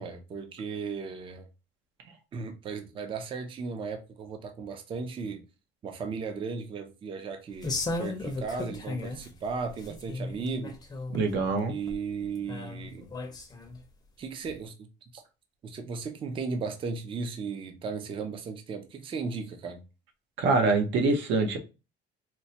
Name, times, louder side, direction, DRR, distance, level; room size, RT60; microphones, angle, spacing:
voice 1, 0.0-1.5 2.3-5.4 5.8-10.7 11.7-13.1 14.2-14.9 15.1-15.2 15.6-19.8, right 5 dB, 30° right, 0.4 m, -36 dB
sound 1, 7.6-9.3 9.7-11.3 11.9-12.0 12.5-13.8 14.5-14.6, left 2 dB, 20° left, 0.6 m, -35 dB
voice 2, 11.1-11.7 20.4-21.6, right 3 dB, 80° right, 0.8 m, -24 dB
4.3 x 2.1 x 2.7 m
cardioid pair, 140°, 19 cm